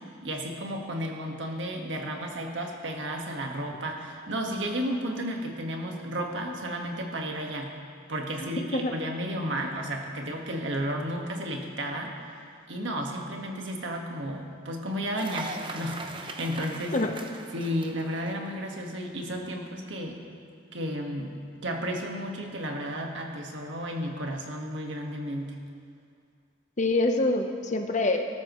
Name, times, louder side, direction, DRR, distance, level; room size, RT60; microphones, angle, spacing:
voice 1, 0.2-7.7 8.1-12.1 12.7-16.9 17.5-20.2 20.7-21.3 21.6-25.5, equal, 75° right, 1 dB, 1.6 m, -33 dB
voice 2, 8.4-8.9 16.9-17.1 26.8-28.2, left 2 dB, 40° left, 5 dB, 0.9 m, -26 dB
Cheering / Applause, 15.2-18.9, right 3 dB, 25° right, 0.7 m, -40 dB
18.5 x 13.5 x 3.1 m, 2.2 s
head